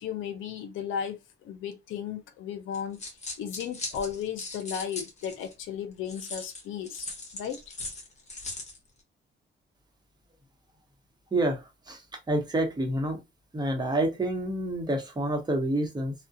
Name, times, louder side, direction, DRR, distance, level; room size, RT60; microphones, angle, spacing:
voice 1, 0.0-3.0 3.4-7.6, left 8 dB, 85° left, 0.6 m, -35 dB
sound 1, 2.7-5.5 6.1-8.8, left 2 dB, 35° left, 1.0 m, -39 dB
voice 2, 11.3-12.0 12.3-13.2 13.5-16.1, right 1 dB, 20° right, 0.9 m, -28 dB
2.3 x 2.1 x 2.7 m
cardioid pair, 90°, 20 cm